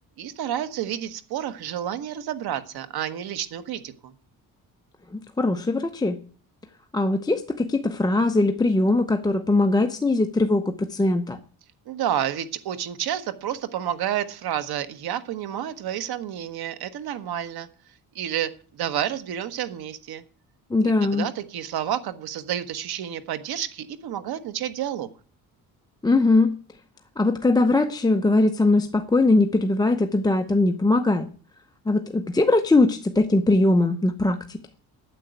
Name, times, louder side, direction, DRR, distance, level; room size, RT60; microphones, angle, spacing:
voice 1, 0.2-4.1 11.9-17.7 18.1-20.2 21.0-25.1, right 10 dB, 80° right, 11 dB, 1.3 m, -30 dB
voice 2, 5.1-6.2 6.9-11.4 20.7-21.3 26.0-26.5 27.2-31.3 31.9-34.6, left 2 dB, 10° left, 6 dB, 0.7 m, -21 dB
9.4 x 7.6 x 9.3 m, 0.42 s
cardioid pair, 135°, 37 cm